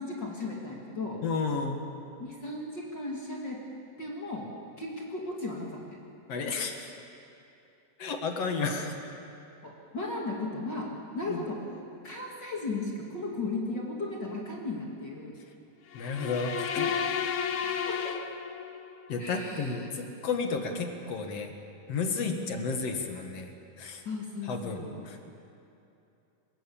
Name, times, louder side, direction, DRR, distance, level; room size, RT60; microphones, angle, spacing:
voice 1, 0.0-1.2 2.2-3.6 4.0-4.5 4.8-6.0 9.6-10.9 11.1-11.5 12.0-15.3 17.6-18.1 19.2-19.7 22.3-22.6 24.0-25.0, left 2 dB, 35° left, -2 dB, 3.0 m, -36 dB
voice 2, 1.2-1.8 6.3-6.9 8.0-8.9 11.2-11.4 15.9-16.9 19.1-21.5 21.9-23.5 23.8-24.0 24.4-25.2, left 4 dB, 50° left, 4 dB, 2.6 m, -32 dB
sound 1, 15.9-19.0, left 7 dB, 80° left, 1.1 m, -32 dB
24.5 x 22.5 x 7.3 m, 2.7 s
omnidirectional pair, 3.9 m